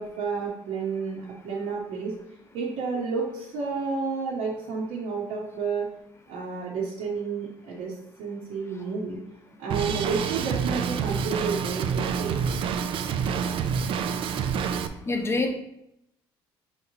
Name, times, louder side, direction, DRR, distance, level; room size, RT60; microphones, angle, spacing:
voice 1, 0.0-2.1 2.5-5.9 6.3-9.2 9.6-12.4, right 4 dB, 75° right, -5 dB, 1.0 m, -31 dB
Drum kit, 9.7-14.9, right 7 dB, 55° right, 0.4 m, -27 dB
voice 2, 12.8-15.5, left 3 dB, 25° left, 5 dB, 0.8 m, -33 dB
5.0 x 3.0 x 2.8 m, 0.82 s
supercardioid pair, 85°, 11 cm